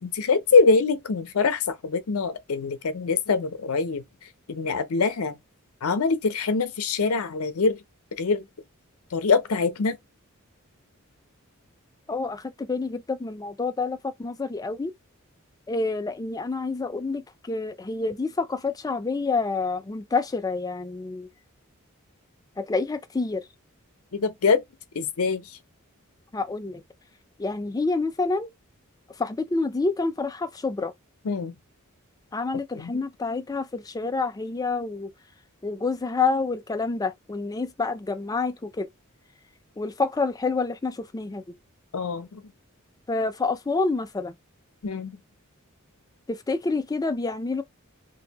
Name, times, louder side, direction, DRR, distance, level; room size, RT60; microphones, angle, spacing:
voice 1, 0.0-4.0 4.5-5.4 5.8-7.8 8.2-8.4 9.1-10.0 24.1-24.6 24.9-25.4 31.3-31.5 32.8-32.9 41.9-42.4 44.8-45.1, left 4 dB, 80° left, 0.6 m, -23 dB
voice 2, 12.1-14.9 15.7-21.3 22.6-23.5 26.3-26.8 27.4-28.5 29.2-30.9 32.3-35.1 35.6-38.9 39.8-41.6 43.1-44.4 46.3-47.6, left 3 dB, 15° left, 0.4 m, -28 dB
2.7 x 2.6 x 4.0 m
head